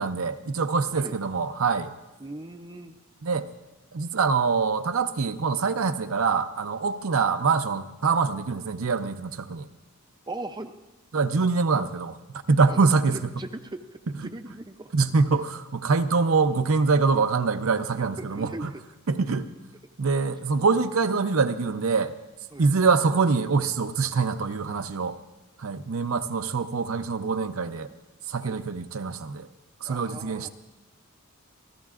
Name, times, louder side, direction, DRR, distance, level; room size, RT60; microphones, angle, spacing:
voice 1, 0.0-1.9 3.2-3.5 3.9-9.7 11.1-13.2 14.9-18.7 19.1-19.5 20.0-22.1 22.6-25.2 25.6-27.9 28.3-29.5 29.8-30.5, right 4 dB, 75° right, 8 dB, 0.6 m, -24 dB
voice 2, 2.2-3.0 10.3-10.7 12.7-14.9 15.3-15.4 18.2-18.7 22.5-22.7 28.4-28.6 29.8-30.5, right 2 dB, 20° right, 6 dB, 0.5 m, -39 dB
28.0 x 13.5 x 2.5 m, 1.0 s
head